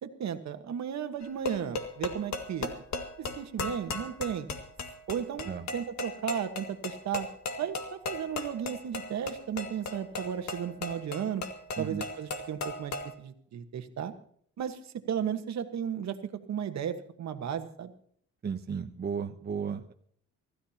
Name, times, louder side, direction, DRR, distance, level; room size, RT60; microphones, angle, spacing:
voice 1, 0.0-2.7 3.2-4.5 5.1-7.3 7.6-11.4 11.8-14.1 14.6-14.8 15.1-16.2 16.5-17.9, right 8 dB, 65° right, 9 dB, 1.4 m, -34 dB
sound 1, 1.2-13.1, left 3 dB, 65° left, 2.0 m, -37 dB
voice 2, 18.4-19.9, right 6 dB, 35° right, 6 dB, 0.8 m, -34 dB
25.0 x 14.0 x 2.9 m, 0.63 s
cardioid pair, 90°, 30 cm